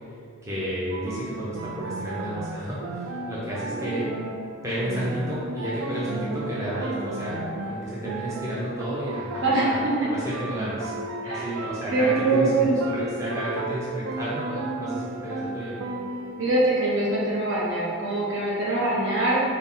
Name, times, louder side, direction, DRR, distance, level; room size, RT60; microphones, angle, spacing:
voice 1, 0.4-4.1 4.6-9.8 10.1-10.9 11.3-15.8, equal, 15° right, -9 dB, 0.5 m, -31 dB
sound 1, 0.9-16.5, right 2 dB, 70° right, 0.3 m, -34 dB
voice 2, 11.9-12.8 16.4-19.4, right 2 dB, 55° right, -6 dB, 0.8 m, -23 dB
4.0 x 2.0 x 3.6 m, 2.3 s
head